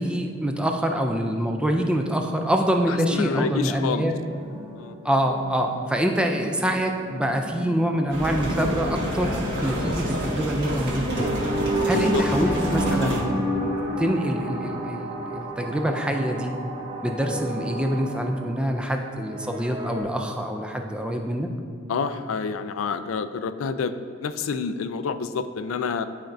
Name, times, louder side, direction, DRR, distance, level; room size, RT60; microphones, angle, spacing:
voice 1, 0.0-4.2 5.0-11.3 11.9-13.5 14.0-16.5 17.0-21.5, equal, 5° right, 3 dB, 0.4 m, -25 dB
sound 1, 2.2-20.0, right 1 dB, 20° right, 0.9 m, -32 dB
voice 2, 2.9-4.1 4.8-4.9 11.7-12.6 21.9-26.0, left 5 dB, 75° left, 11 dB, 0.4 m, -28 dB
sound 2, 8.1-13.2, equal, 60° right, 1.6 m, -28 dB
11.5 x 4.3 x 2.6 m, 2.3 s
head